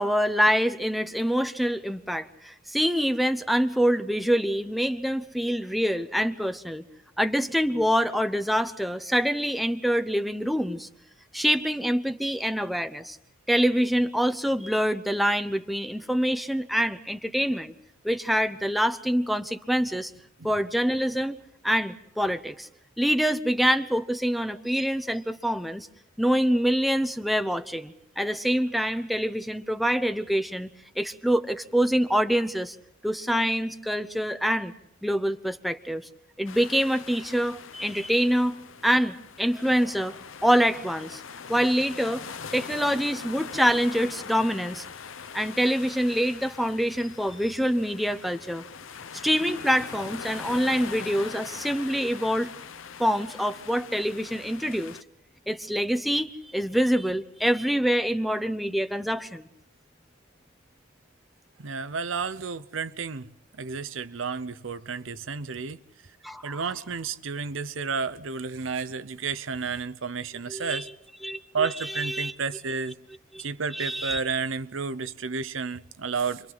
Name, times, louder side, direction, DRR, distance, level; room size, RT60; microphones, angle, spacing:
voice 1, 0.0-6.8 7.2-10.9 11.3-13.2 13.5-17.7 18.0-20.1 20.4-21.4 21.6-22.7 23.0-25.9 26.2-30.7 31.0-32.8 33.0-34.7 35.0-36.1 36.4-38.5 38.8-40.2 40.4-41.2 41.5-42.2 42.5-44.9 45.3-48.6 49.2-52.5 53.0-55.0 55.5-59.5 66.2-66.6 70.5-70.8 71.2-72.3 73.3-73.5 73.7-74.2, equal, ahead, 0.8 m, -25 dB
sound 1, 36.5-55.0, left 6 dB, 85° left, 0.8 m, -42 dB
voice 2, 61.6-65.8 66.4-70.9 71.5-73.0 73.4-76.5, right 5 dB, 80° right, 0.8 m, -31 dB
30.0 x 24.0 x 4.0 m
head